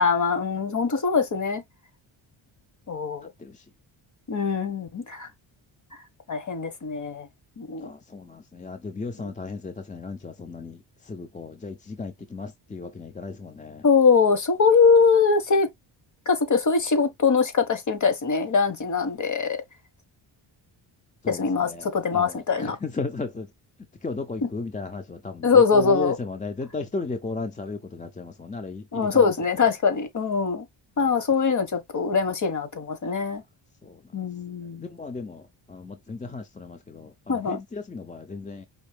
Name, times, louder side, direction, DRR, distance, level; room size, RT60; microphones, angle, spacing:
voice 1, 0.0-1.6 2.9-3.3 4.3-5.3 6.3-7.3 7.6-7.9 13.8-15.7 16.2-19.6 21.3-22.8 24.4-24.5 25.4-26.2 28.9-30.6 31.0-33.4 34.1-34.9 37.3-37.6, left 5 dB, 40° left, 1.4 m, -22 dB
voice 2, 7.8-13.8 21.2-23.5 24.0-29.3 31.0-31.1 33.0-33.1 33.8-34.0 34.8-38.7, left 3 dB, 15° left, 0.6 m, -35 dB
5.2 x 2.7 x 3.2 m
cardioid pair, 110°, 46 cm